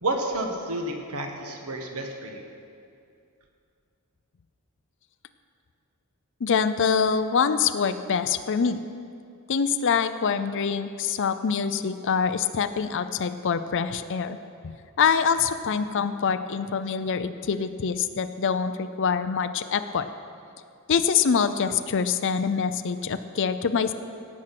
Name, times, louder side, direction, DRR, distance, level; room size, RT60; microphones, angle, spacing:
voice 1, 0.0-2.4, right 2 dB, 85° right, 3 dB, 1.4 m, -30 dB
voice 2, 6.4-8.8 9.5-14.4 15.0-20.1 20.9-23.9, left 6 dB, 60° left, 10 dB, 0.5 m, -25 dB
17.0 x 7.5 x 5.9 m, 2.5 s
head